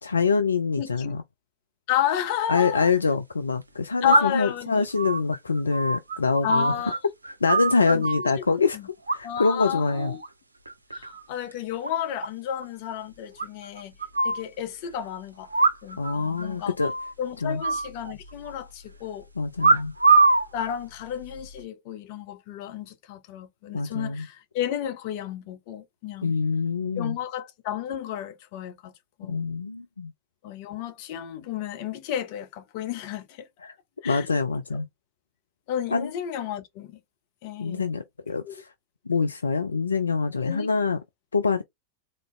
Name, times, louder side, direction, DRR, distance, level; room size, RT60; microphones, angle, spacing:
voice 1, 0.0-1.2 2.5-7.0 7.4-8.8 9.1-10.2 16.0-16.9 17.4-17.6 19.4-19.9 23.7-24.3 26.2-27.2 29.2-30.1 33.6-33.7 34.0-34.9 35.9-36.1 37.6-38.7 39.1-41.0 41.3-41.6, left 4 dB, 75° left, 0.4 m, -25 dB
voice 2, 0.8-1.1 1.9-2.9 4.0-4.8 6.4-7.0 7.9-8.3 8.7-8.8 9.2-10.2 10.9-13.9 14.2-15.5 15.8-16.7 17.2-19.3 19.6-19.8 20.5-26.3 27.0-28.9 29.2-29.4 30.4-33.5 34.0-34.3 35.7-37.0 37.4-37.8 38.4-38.5 40.4-40.8, left 10 dB, 45° left, 1.0 m, -32 dB
sound 1, 2.3-2.4 4.1-4.5 5.0-7.0 7.2-8.3 9.1-9.6 9.9-10.3 10.7-11.2 11.5-11.6 11.8-11.9 12.2-12.3 12.6-12.7 13.4-14.4 15.5-16.1 16.4-16.5 16.8-17.1 17.6-18.5 19.6-20.5 21.2-21.6, right 3 dB, 80° right, 0.6 m, -23 dB
3.8 x 2.9 x 3.3 m
figure-of-eight pair, 90°, 0 cm